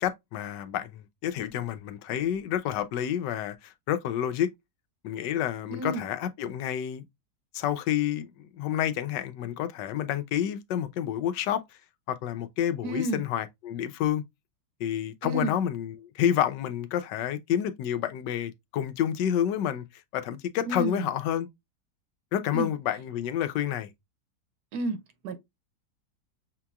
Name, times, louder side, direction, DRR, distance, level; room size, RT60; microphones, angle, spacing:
voice 1, 0.0-4.5 5.0-7.0 7.5-11.6 12.1-14.2 14.8-19.8 20.1-21.5 22.3-23.9, left 10 dB, 85° left, 1.3 m, -29 dB
voice 2, 5.7-6.1 12.8-13.2 15.2-15.5 20.7-21.1 22.5-22.7 24.7-25.0 25.2-25.3, right 2 dB, 70° right, 1.4 m, -31 dB
6.5 x 2.9 x 2.3 m
omnidirectional pair, 1.8 m